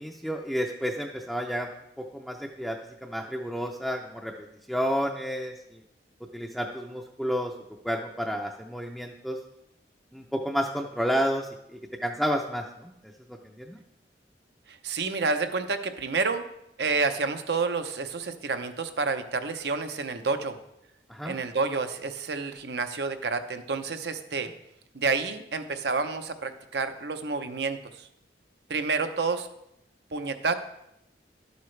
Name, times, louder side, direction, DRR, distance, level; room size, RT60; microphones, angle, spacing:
voice 1, 0.0-1.7 2.0-4.3 4.7-5.8 6.3-7.5 7.8-9.4 10.1-12.9 13.3-13.8 21.1-21.4, equal, ahead, 0 dB, 0.5 m, -31 dB
voice 2, 14.7-16.4 16.8-20.6 21.2-24.5 24.9-28.1 28.7-29.5 30.1-30.6, right 4 dB, 75° right, 8 dB, 0.7 m, -29 dB
11.5 x 8.1 x 3.3 m, 0.81 s
head